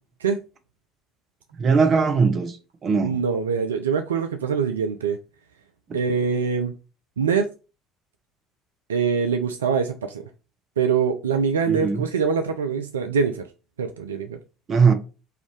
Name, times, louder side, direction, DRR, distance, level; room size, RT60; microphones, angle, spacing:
voice 1, 1.6-2.6 2.8-3.1 11.7-12.0 14.7-14.9, right 5 dB, 40° right, 0.8 m, -19 dB
voice 2, 3.0-5.2 5.9-6.7 7.2-7.5 8.9-10.2 10.8-13.4 13.8-14.4, right 6 dB, 80° right, 0.3 m, -24 dB
4.7 x 2.6 x 3.1 m
figure-of-eight pair, 60°, 0 cm